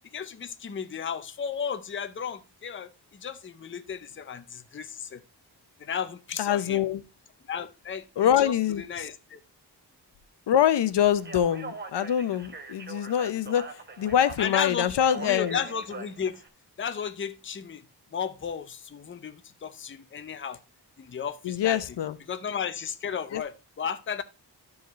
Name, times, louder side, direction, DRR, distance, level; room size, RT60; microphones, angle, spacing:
voice 1, 0.1-5.2 5.8-6.8 7.5-9.4 14.4-16.4 16.8-17.8 18.1-20.6 21.0-22.0 22.3-24.2, left 7 dB, 30° left, 0.5 m, -34 dB
voice 2, 6.4-7.0 8.2-8.8 10.5-13.6 14.0-15.6 21.4-22.2 23.3-23.4, left 10 dB, 85° left, 0.7 m, -24 dB
Speech, 11.1-16.5, right 3 dB, 25° right, 0.9 m, -42 dB
11.5 x 4.8 x 3.1 m
wide cardioid pair, 165°, 41 cm